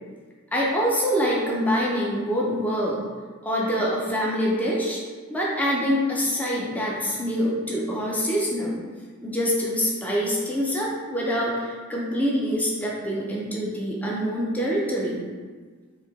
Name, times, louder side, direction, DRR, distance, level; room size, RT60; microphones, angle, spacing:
voice 1, 0.5-3.0 3.4-5.0 5.3-8.8 9.2-15.3, equal, 5° left, -4 dB, 0.5 m, -25 dB
4.2 x 2.8 x 3.5 m, 1.5 s
head